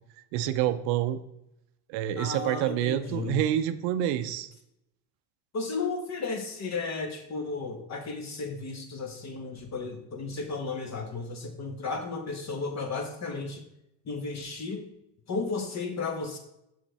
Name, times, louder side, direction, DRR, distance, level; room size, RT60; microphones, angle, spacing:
voice 1, 0.3-1.2 1.9-4.5, right 12 dB, 60° right, 12 dB, 0.6 m, -27 dB
voice 2, 2.1-3.4 5.5-13.6 14.0-14.9 15.3-16.4, left 4 dB, 35° left, 4 dB, 1.4 m, -34 dB
6.5 x 5.9 x 3.4 m, 0.82 s
supercardioid pair, 90°, 47 cm